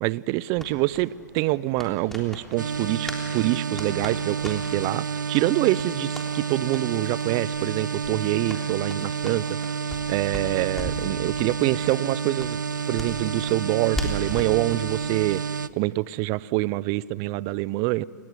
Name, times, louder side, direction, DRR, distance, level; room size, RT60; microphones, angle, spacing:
voice 1, 0.0-9.8 10.1-12.6 12.9-15.4 15.7-18.0, right 19 dB, 35° right, 22 dB, 0.6 m, -26 dB
sound 1, 0.6-3.3 3.5-4.9 5.3-5.5 5.7-6.3 6.7-6.8 7.2-7.3 7.5-7.7 8.0-10.1 10.3-11.1 11.4-11.5 11.8-11.9 12.4-14.6, left 1 dB, 5° left, 3.5 m, -36 dB
sound 2, 2.6-15.7, right 6 dB, 90° right, 0.7 m, -30 dB
28.0 x 19.0 x 9.9 m, 2.4 s
hypercardioid pair, 125°, 10 cm